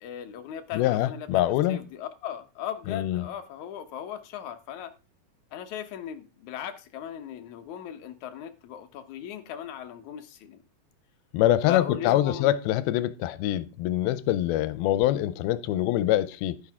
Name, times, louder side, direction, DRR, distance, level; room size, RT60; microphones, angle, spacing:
voice 1, 0.0-1.3 1.7-4.9 5.5-10.6 11.7-12.6, left 9 dB, 65° left, 2.1 m, -37 dB
voice 2, 0.7-1.9 2.9-3.3 11.3-16.6, left 13 dB, 90° left, 2.6 m, -24 dB
11.5 x 10.5 x 3.6 m
omnidirectional pair, 4.2 m